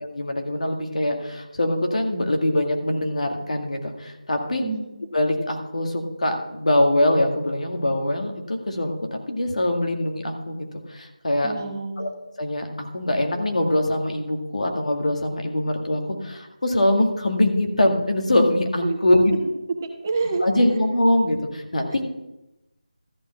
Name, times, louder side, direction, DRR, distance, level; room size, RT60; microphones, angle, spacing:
voice 1, 0.0-4.6 5.1-11.5 12.0-12.1 12.4-19.3 20.4-22.0, left 1 dB, 65° left, 3 dB, 1.9 m, -23 dB
voice 2, 11.4-12.0 18.8-19.0 20.0-20.8, right 3 dB, 25° right, 3 dB, 1.1 m, -27 dB
13.5 x 4.6 x 7.4 m, 0.95 s
figure-of-eight pair, 165°, 4 cm